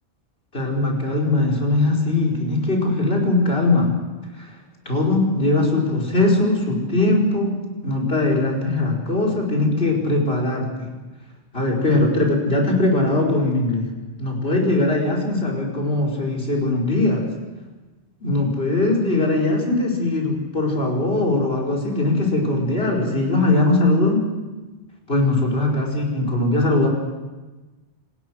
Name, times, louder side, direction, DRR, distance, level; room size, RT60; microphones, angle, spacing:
voice 1, 0.5-3.9 4.4-4.5 4.8-7.6 7.8-10.9 11.5-13.9 14.2-17.2 18.2-24.2 25.1-26.9, left 2 dB, 60° left, 1 dB, 5.1 m, -20 dB
27.0 x 20.0 x 6.3 m, 1.2 s
omnidirectional pair, 1.1 m